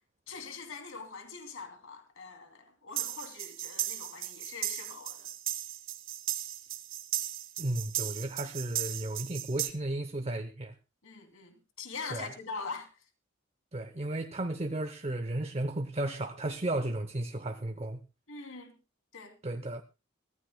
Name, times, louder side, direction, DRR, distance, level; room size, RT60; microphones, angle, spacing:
voice 1, 0.3-5.3 11.0-13.0 18.3-18.7 19.1-19.4, left 4 dB, 80° left, 2.8 m, -43 dB
sound 1, 3.0-9.7, right 12 dB, 70° right, 1.2 m, -36 dB
voice 2, 7.6-10.7 12.1-12.3 13.7-18.0 19.4-19.8, right 1 dB, 30° right, 0.7 m, -34 dB
23.5 x 14.5 x 2.2 m
head